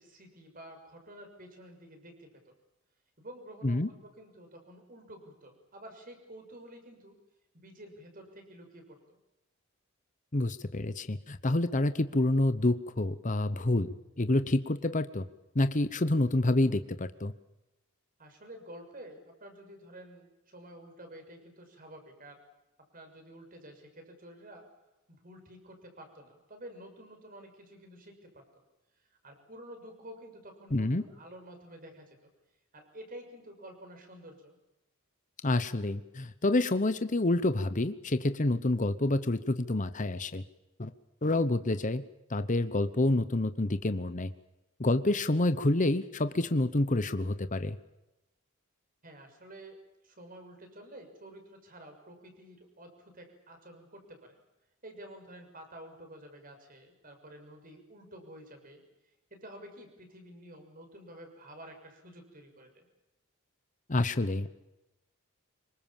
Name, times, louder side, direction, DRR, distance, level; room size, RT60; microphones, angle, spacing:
voice 1, 0.0-2.5 3.2-7.1 7.5-9.2 18.2-22.4 22.9-24.6 25.1-28.6 29.1-32.3 32.7-34.6 49.0-49.8 50.0-54.4 54.8-58.8 59.3-62.9, right 1 dB, 40° right, 5 dB, 6.4 m, -50 dB
voice 2, 10.3-15.3 15.5-17.3 30.7-31.0 35.4-40.4 40.8-40.9 41.2-42.0 42.3-44.3 44.8-47.8 63.9-64.5, left 2 dB, 35° left, 11 dB, 1.0 m, -28 dB
26.0 x 24.0 x 7.3 m, 0.96 s
head